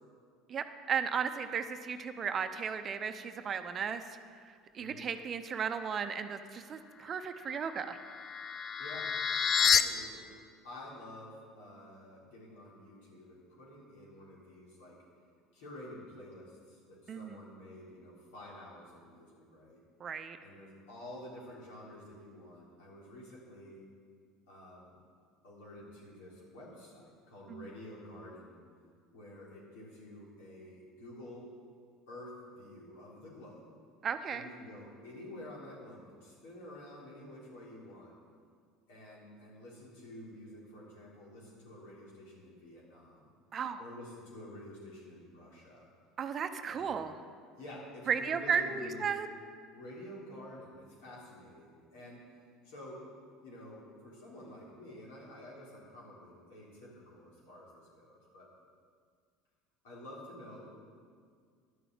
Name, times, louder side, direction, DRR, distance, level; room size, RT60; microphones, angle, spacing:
voice 1, 0.5-4.1 4.7-8.0 17.1-17.4 20.0-20.4 27.5-27.7 34.0-34.5 43.5-43.8 46.2-47.2 48.1-49.3, right 7 dB, 40° right, 9 dB, 0.7 m, -35 dB
voice 2, 4.8-5.1 8.8-9.1 9.6-10.4 10.6-15.0 15.5-19.8 20.4-23.8 24.5-24.9 25.4-28.6 29.1-31.5 32.1-33.6 34.3-38.1 38.9-43.3 43.8-45.9 46.7-47.0 47.6-49.1 49.7-52.3 52.6-53.0 53.4-58.5 59.8-60.7, left 1 dB, 75° left, -5 dB, 3.6 m, -49 dB
Hand Bells Reverse Cluster, 7.6-9.8, left 7 dB, 40° left, 0.5 m, -29 dB
11.0 x 6.9 x 7.6 m, 2.1 s
hypercardioid pair, 75°, 0 cm